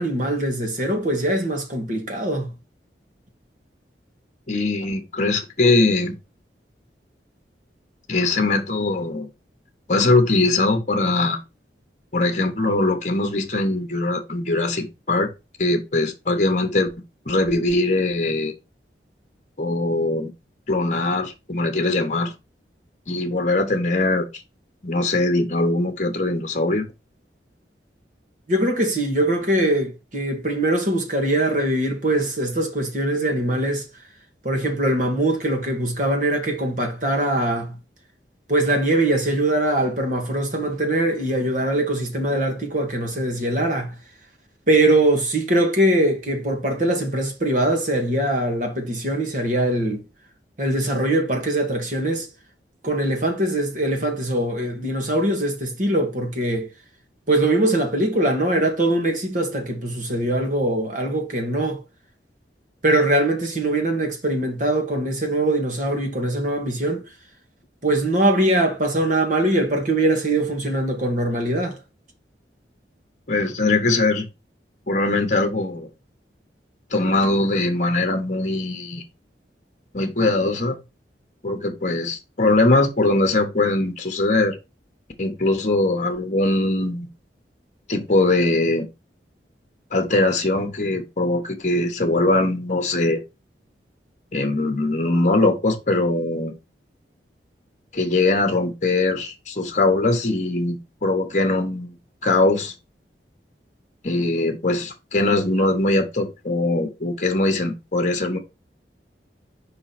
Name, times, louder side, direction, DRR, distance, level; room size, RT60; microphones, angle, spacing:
voice 1, 0.0-2.5 28.5-33.9 34.4-37.8 38.5-43.9 44.7-50.0 50.6-52.3 52.8-56.7 57.3-61.8 62.8-67.0 67.8-71.8, right 1 dB, 45° right, 1.7 m, -22 dB
voice 2, 4.5-6.2 8.1-9.3 9.9-11.4 12.1-15.3 15.6-16.9 17.3-18.5 19.6-20.3 20.7-22.3 23.1-24.3 24.8-26.9 73.3-74.3 74.9-75.9 76.9-79.0 79.9-80.8 81.4-84.5 85.2-87.1 87.9-88.8 89.9-93.2 94.3-96.5 97.9-102.0 102.2-102.7 104.0-108.4, left 2 dB, 45° left, 1.1 m, -21 dB
5.0 x 3.9 x 5.8 m
head